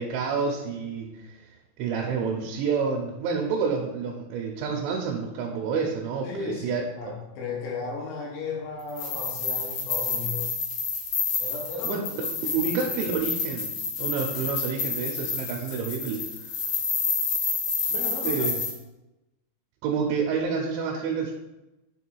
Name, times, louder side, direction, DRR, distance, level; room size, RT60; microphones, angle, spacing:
voice 1, 0.0-1.4 1.8-7.1 11.8-12.0 12.4-13.7 14.0-16.6 18.2-18.5 19.8-21.3, right 5 dB, 80° right, -1 dB, 2.9 m, -29 dB
voice 2, 6.2-10.5 11.4-12.6 17.9-18.7, left 4 dB, 75° left, -3 dB, 3.1 m, -35 dB
sound 1, 8.9-18.7, left 5 dB, 60° left, 2.1 m, -29 dB
7.4 x 3.2 x 4.6 m, 0.99 s
omnidirectional pair, 5.4 m